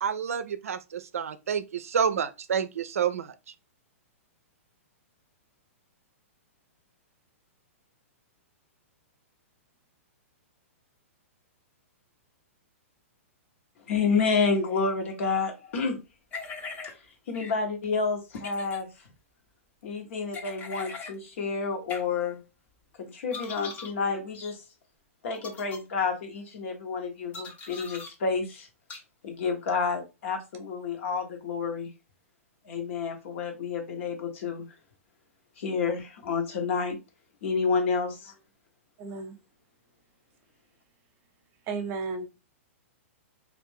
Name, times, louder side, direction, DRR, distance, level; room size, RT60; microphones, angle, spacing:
voice 1, 0.0-3.3, right 7 dB, 85° right, 0.4 m, -29 dB
voice 2, 13.9-16.0 17.3-18.9 19.8-22.4 23.0-24.6 25.2-28.7 29.2-31.9 32.6-34.7 35.6-37.0 37.4-38.3, left 5 dB, 65° left, 1.0 m, -29 dB
sound 1, 16.3-16.9 17.3-17.5 18.3-18.8 20.3-21.1 21.9-22.0 23.3-23.9 24.3-24.5 25.4-25.8 27.3-28.1 28.9-29.0, left 4 dB, 25° left, 0.7 m, -40 dB
voice 3, 39.0-39.4 41.7-42.3, right 4 dB, 35° right, 0.8 m, -33 dB
2.5 x 2.5 x 3.6 m
hypercardioid pair, 130°, 8 cm